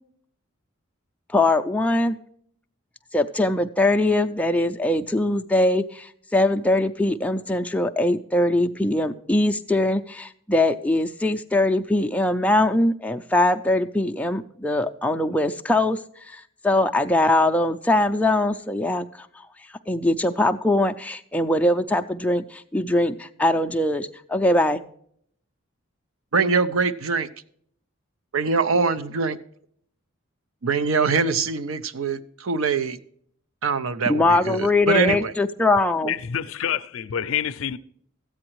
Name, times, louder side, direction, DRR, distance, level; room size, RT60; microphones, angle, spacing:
voice 1, 1.3-2.2 3.1-16.0 16.3-19.3 19.9-24.8 34.1-36.1, left 1 dB, 5° left, 0.4 m, -22 dB
voice 2, 26.3-27.3 28.3-29.4 30.6-33.0 33.6-35.3 36.0-36.1, right 4 dB, 75° right, 0.6 m, -23 dB
voice 3, 36.1-37.8, left 9 dB, 70° left, 0.5 m, -27 dB
13.5 x 8.7 x 3.0 m
head